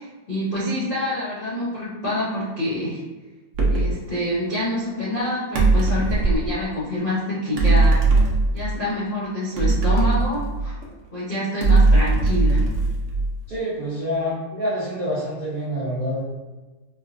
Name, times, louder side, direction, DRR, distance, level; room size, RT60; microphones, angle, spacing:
voice 1, 0.0-3.0 3.7-8.0 8.5-10.8 11.1-12.6, left 1 dB, 50° left, -10 dB, 0.6 m, -26 dB
sound 1, 3.5-4.0 5.5-6.5 7.6-8.8 9.6-10.9 11.6-13.5, right 3 dB, 85° right, 0.6 m, -19 dB
voice 2, 13.5-16.2, equal, 45° right, -10 dB, 0.7 m, -27 dB
4.4 x 2.2 x 2.5 m, 1.2 s
omnidirectional pair, 2.1 m